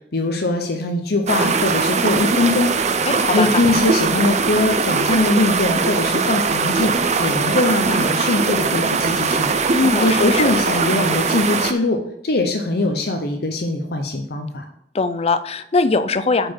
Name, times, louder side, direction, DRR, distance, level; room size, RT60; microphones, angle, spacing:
voice 1, 0.1-9.5 10.0-14.6, left 2 dB, 60° left, 4 dB, 0.8 m, -21 dB
sound 1, 1.3-11.7, right 4 dB, 40° right, 0.6 m, -20 dB
voice 2, 3.1-3.5 9.7-10.5 14.9-16.5, left 3 dB, 35° left, 13 dB, 0.5 m, -20 dB
8.8 x 4.7 x 4.5 m, 0.74 s
head